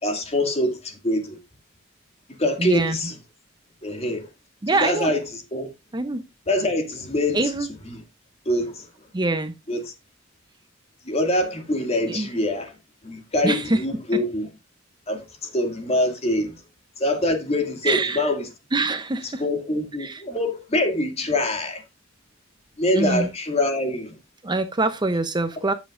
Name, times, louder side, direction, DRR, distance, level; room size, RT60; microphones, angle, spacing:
voice 1, 0.0-1.4 2.4-3.2 3.8-4.3 4.8-5.7 6.5-7.4 7.9-8.0 8.5-8.9 9.7-9.9 11.0-12.8 13.0-14.5 15.1-16.6 17.0-18.5 19.2-21.8 22.8-24.1, left 1 dB, 30° left, 2.2 m, -24 dB
voice 2, 2.6-2.9 4.6-5.1 5.9-6.2 7.3-7.7 9.1-9.5 12.0-12.3 13.4-13.8 17.8-18.2 18.7-19.4 20.0-20.2 22.9-23.3 24.4-25.7, right 2 dB, 20° right, 0.6 m, -24 dB
13.5 x 7.1 x 2.5 m
head